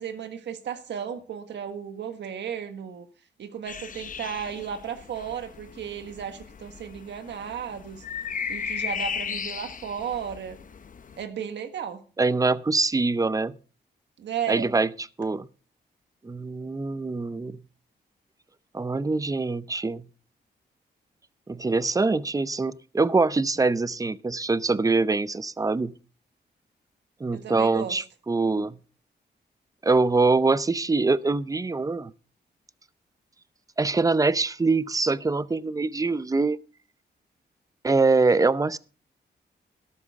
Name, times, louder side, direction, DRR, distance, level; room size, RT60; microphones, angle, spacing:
voice 1, 0.0-3.1 3.4-8.0 8.5-10.6 11.2-12.0 14.2-14.7 27.3-28.0, right 8 dB, 85° right, 8 dB, 1.6 m, -34 dB
sound 1, 3.7-11.2, left 6 dB, 50° left, 0.8 m, -36 dB
voice 2, 12.2-13.5 14.5-14.9 15.2-15.5 16.2-17.6 18.7-20.1 21.5-25.9 27.2-28.8 29.8-32.1 33.8-36.6 37.8-38.8, right 3 dB, 20° right, 17 dB, 0.6 m, -24 dB
13.0 x 12.0 x 3.6 m, 0.37 s
cardioid pair, 90°, 18 cm